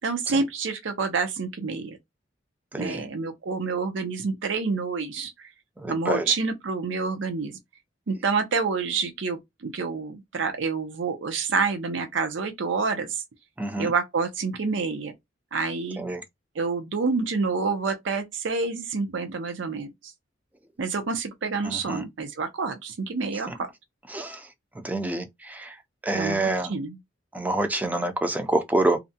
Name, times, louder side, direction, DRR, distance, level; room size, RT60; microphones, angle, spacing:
voice 1, 0.0-2.0 2.7-5.5 5.9-7.6 8.1-13.2 13.8-15.1 15.5-16.0 16.6-19.9 20.8-23.7 26.1-27.0, right 4 dB, 75° right, 0.5 m, -28 dB
voice 2, 2.7-3.0 5.8-6.3 13.6-13.9 16.0-16.2 21.6-22.0 24.1-24.4 24.8-25.7 26.0-26.7 27.3-29.0, right 2 dB, 10° right, 0.4 m, -27 dB
2.5 x 2.1 x 2.6 m
head